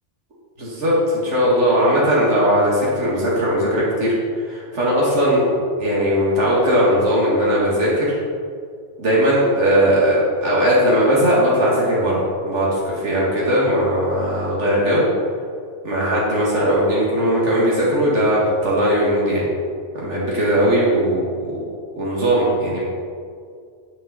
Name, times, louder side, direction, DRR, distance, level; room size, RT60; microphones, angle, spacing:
voice 1, 0.6-5.4 5.8-8.2 9.0-15.1 15.8-19.5 19.9-21.6 21.9-22.8, equal, 85° right, -6 dB, 2.4 m, -18 dB
9.3 x 9.1 x 4.1 m, 2.2 s
omnidirectional pair, 1.2 m